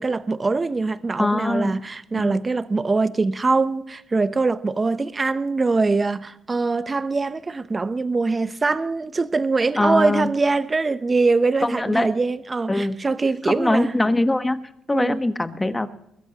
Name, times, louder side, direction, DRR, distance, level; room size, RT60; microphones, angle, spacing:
voice 1, 0.0-13.9 14.9-15.2, right 3 dB, 25° right, 0.9 m, -23 dB
voice 2, 1.2-1.8 2.1-2.4 9.8-10.3 11.6-12.1 12.7-13.0 13.4-14.6 14.9-15.9, left 2 dB, 15° left, 1.3 m, -22 dB
22.0 x 16.0 x 3.0 m
cardioid pair, 90°, 0 cm